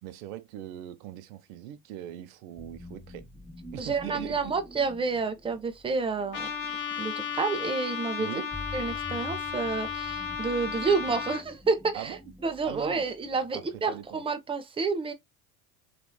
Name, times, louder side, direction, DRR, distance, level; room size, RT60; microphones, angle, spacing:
voice 1, 0.0-3.2 3.7-4.5 8.2-8.5 11.9-12.2 12.6-13.1 13.5-14.2, right 12 dB, 65° right, 0.6 m, -41 dB
sound 1, 2.6-14.1, left 2 dB, 5° left, 1.1 m, -47 dB
voice 2, 3.8-6.5 7.0-8.4 8.7-12.2 12.4-15.1, right 4 dB, 10° right, 0.5 m, -29 dB
Trumpet, 6.3-11.4, left 7 dB, 45° left, 1.0 m, -34 dB
3.0 x 2.5 x 2.2 m
hypercardioid pair, 75°, 45 cm